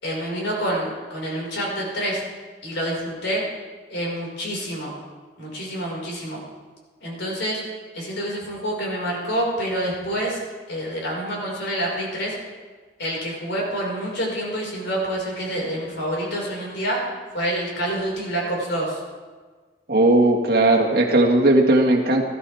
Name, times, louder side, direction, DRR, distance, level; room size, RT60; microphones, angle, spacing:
voice 1, 0.0-2.2 2.6-3.4 3.9-4.9 5.4-6.4 7.0-7.6 7.9-10.4 10.7-12.3 13.0-17.0 17.3-19.0, right 1 dB, 80° left, -3 dB, 5.1 m, -27 dB
voice 2, 19.9-22.2, right 2 dB, 55° right, -1 dB, 1.8 m, -17 dB
18.5 x 13.0 x 3.5 m, 1.4 s
head